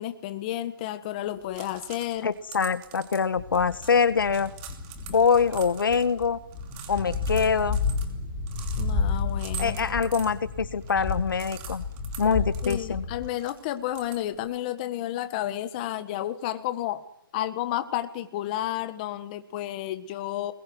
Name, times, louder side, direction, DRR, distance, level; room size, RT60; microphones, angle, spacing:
voice 1, 0.0-2.3 8.8-9.8 12.6-17.0 17.3-20.5, left 13 dB, 20° left, 10 dB, 1.5 m, -31 dB
sound 1, 1.3-14.6, right 9 dB, 20° right, 2.7 m, -46 dB
voice 2, 2.2-4.5 5.1-6.4 6.9-7.8 9.6-11.8 12.2-13.0, left 6 dB, 65° left, 13 dB, 1.7 m, -24 dB
sound 2, 3.4-13.3, left 4 dB, 5° left, 7.0 m, -32 dB
28.0 x 21.5 x 9.5 m, 0.76 s
hypercardioid pair, 165°, 12 cm